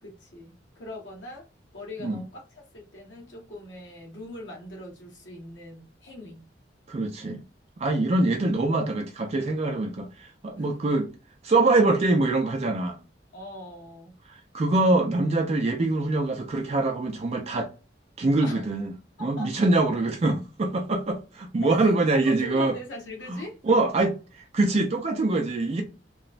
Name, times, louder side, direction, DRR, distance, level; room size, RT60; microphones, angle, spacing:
voice 1, 0.0-1.5 1.7-6.5 10.5-10.9 13.3-14.2 18.4-18.8 19.2-19.7 21.6-23.6, left 1 dB, 90° left, 1.1 m, -41 dB
voice 2, 6.9-7.4 7.8-11.1 11.4-13.0 14.5-17.7 18.2-18.9 19.2-22.7 23.3-23.4 23.7-24.2 24.5-25.8, right 2 dB, 35° right, 0.4 m, -24 dB
2.9 x 2.0 x 2.4 m
head